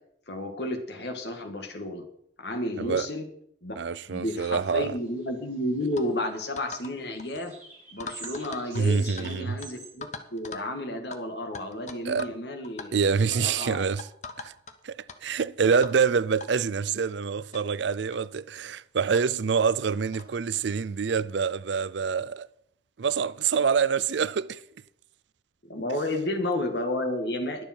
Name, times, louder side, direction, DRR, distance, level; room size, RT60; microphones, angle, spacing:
voice 1, 0.3-2.1 2.4-3.3 3.6-3.7 4.1-7.5 7.9-13.0 13.3-13.8 25.7-27.6, left 1 dB, 65° left, 2.0 m, -32 dB
voice 2, 3.8-4.9 8.7-9.6 12.0-12.3 12.9-14.1 14.4-14.5 14.8-22.5 23.0-24.6, right 6 dB, 75° right, 0.5 m, -26 dB
sound 1, 3.9-6.0 6.2-9.9, right 4 dB, 10° right, 5.5 m, -47 dB
sound 2, 6.0-6.1 6.6-6.9 7.2-7.4 8.0-9.3 9.6-9.7 10.0-10.7 11.1-11.2 11.5-12.4 12.6-12.9 13.3-13.5 14.0-14.7 15.1-15.2 15.8-16.0 16.4-16.5 17.2-17.3 17.5-17.6 18.1-18.3 19.1-19.2 20.1-20.3, left 4 dB, 40° left, 1.0 m, -41 dB
21.5 x 7.2 x 4.5 m
head